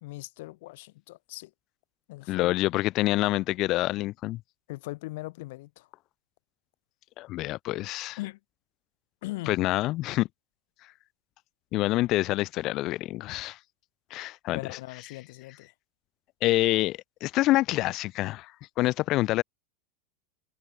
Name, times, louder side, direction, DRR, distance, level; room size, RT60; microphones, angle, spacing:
voice 1, 0.0-1.5 2.1-2.6 4.7-5.9 8.2-8.4 9.2-9.6 14.5-15.7, left 20 dB, 60° left, 2.7 m, -39 dB
voice 2, 2.3-4.4 7.2-8.2 9.5-10.3 11.7-13.6 14.1-14.6 16.4-18.5 18.8-19.4, left 17 dB, 35° left, 0.3 m, -26 dB
supercardioid pair, 155°, 0 cm